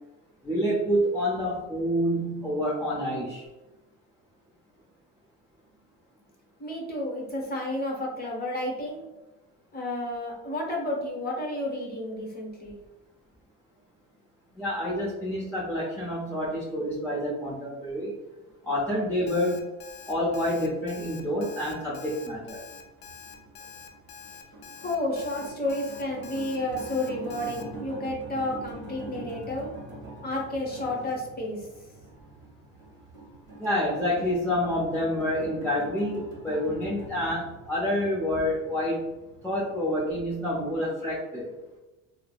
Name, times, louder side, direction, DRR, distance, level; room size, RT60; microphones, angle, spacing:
voice 1, 0.4-3.4 14.6-18.1 18.7-19.7 20.1-22.6 33.6-39.1 39.4-41.5, equal, 5° left, -7 dB, 0.6 m, -28 dB
voice 2, 6.6-9.0 9.7-12.7 24.8-29.7 30.2-31.7, left 1 dB, 25° left, -2 dB, 1.0 m, -31 dB
Alarm, 19.3-27.6, left 6 dB, 65° left, 0.6 m, -46 dB
sound 1, 20.0-39.8, right 2 dB, 30° right, 1.3 m, -45 dB
3.1 x 2.0 x 2.4 m, 1.1 s
supercardioid pair, 90°, 39 cm